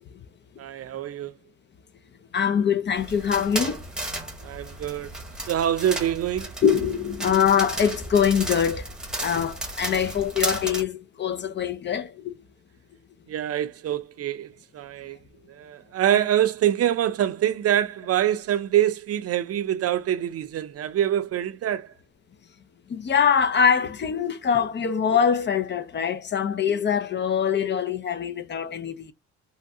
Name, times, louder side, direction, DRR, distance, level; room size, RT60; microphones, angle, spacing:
voice 1, 0.6-1.4 4.4-5.2 5.5-6.5 13.3-15.2 15.5-21.9, right 11 dB, 55° right, 0.5 m, -25 dB
voice 2, 2.3-3.8 6.6-8.9 9.2-12.3 22.9-29.1, left 7 dB, 35° left, 0.5 m, -23 dB
sound 1, 3.0-10.8, right 1 dB, ahead, 1.0 m, -34 dB
3.5 x 2.2 x 2.7 m
cardioid pair, 90°, 30 cm